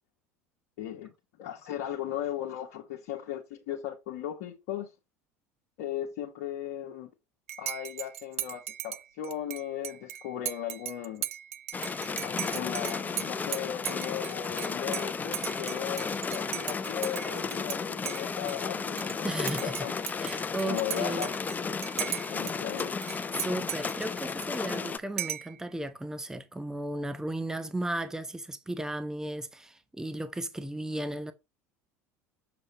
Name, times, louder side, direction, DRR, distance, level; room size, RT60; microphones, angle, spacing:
voice 1, 0.8-1.1 1.4-4.9 5.8-7.1 7.6-11.2 12.2-19.9 20.6-21.3 21.9-22.9, left 10 dB, 60° left, 1.4 m, -37 dB
Dishes pots and pans / Cutlery silverware / Chink clink, 7.5-17.8 18.1-19.1 19.5-22.5 22.8-24.8 25.2-25.6, right 12 dB, 75° right, 0.4 m, -38 dB
sound 1, 11.7-25.0, left 5 dB, 20° left, 0.7 m, -34 dB
voice 2, 19.2-19.9 20.2-21.3 23.4-31.3, right 1 dB, 5° right, 0.9 m, -35 dB
7.1 x 6.7 x 3.4 m
figure-of-eight pair, 70°, 8 cm